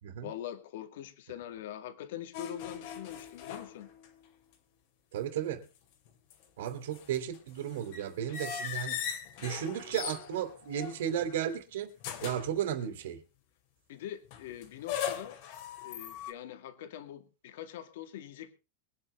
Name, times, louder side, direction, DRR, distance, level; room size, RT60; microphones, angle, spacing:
voice 1, 0.2-3.9 13.9-15.4 15.8-18.5, left 11 dB, 65° left, 2.1 m, -43 dB
sound 1, 2.3-4.2 4.5-4.6 6.1-11.4 12.0-12.6 14.3-16.3, left 8 dB, 45° left, 2.6 m, -40 dB
voice 2, 5.1-5.6 6.6-9.0 9.4-11.9 12.2-13.2, right 9 dB, 75° right, 3.2 m, -34 dB
23.5 x 9.7 x 3.4 m
supercardioid pair, 175°, 0 cm